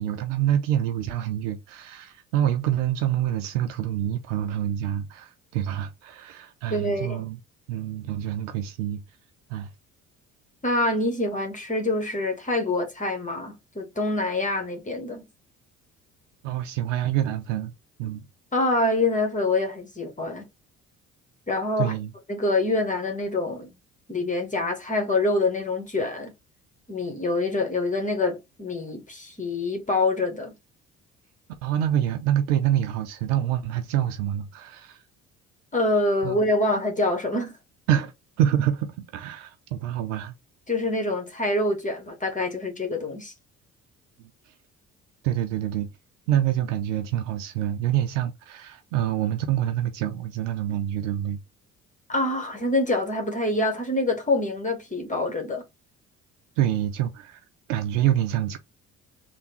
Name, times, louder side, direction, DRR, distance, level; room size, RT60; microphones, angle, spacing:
voice 1, 0.0-7.4 7.7-9.0 9.5-9.7 16.4-17.7 18.0-18.3 21.8-22.1 31.6-35.0 36.2-36.4 37.9-38.1 38.4-40.3 44.2-44.5 45.2-45.9 46.3-51.4 56.6-58.6, right 11 dB, 90° right, 0.5 m, -26 dB
voice 2, 6.7-7.2 10.6-15.2 18.5-20.5 21.5-21.9 22.3-23.7 24.1-26.3 26.9-30.6 35.7-37.6 40.7-43.3 52.1-55.6, left 2 dB, 20° left, 1.2 m, -26 dB
3.4 x 2.2 x 4.2 m
hypercardioid pair, 60°, 36 cm